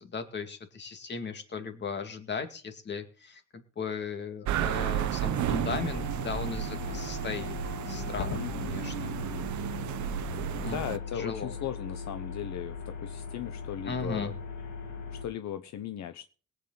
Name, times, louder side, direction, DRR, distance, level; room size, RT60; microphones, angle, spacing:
voice 1, 0.0-7.5 7.9-9.1 10.6-10.8 11.1-11.5 13.8-14.3, left 5 dB, 35° left, 7 dB, 2.3 m, -37 dB
sound 1, 4.4-11.0, right 13 dB, 75° right, 0.8 m, -33 dB
sound 2, 5.3-15.2, left 5 dB, 90° left, 3.3 m, -39 dB
voice 2, 8.3-9.5 10.6-14.3 15.1-16.2, left 10 dB, 70° left, 10 dB, 1.0 m, -38 dB
22.0 x 8.4 x 4.0 m, 0.38 s
cardioid pair, 150°, 29 cm